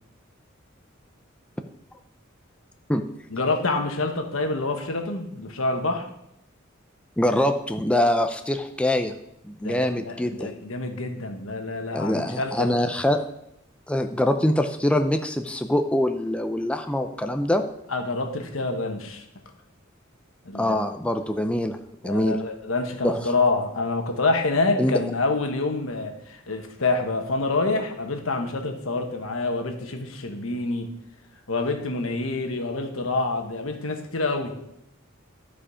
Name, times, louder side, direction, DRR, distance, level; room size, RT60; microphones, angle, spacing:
voice 1, 3.3-6.1 9.6-12.9 17.9-19.2 20.4-20.7 22.0-30.9 31.5-34.5, left 3 dB, 80° left, 5 dB, 1.3 m, -27 dB
voice 2, 7.2-9.1 9.4-10.5 11.9-13.2 13.9-17.6 20.5-21.8 22.0-22.4 23.0-23.2 24.8-24.9, left 1 dB, 5° left, 6 dB, 0.4 m, -24 dB
12.5 x 5.0 x 4.9 m, 0.80 s
head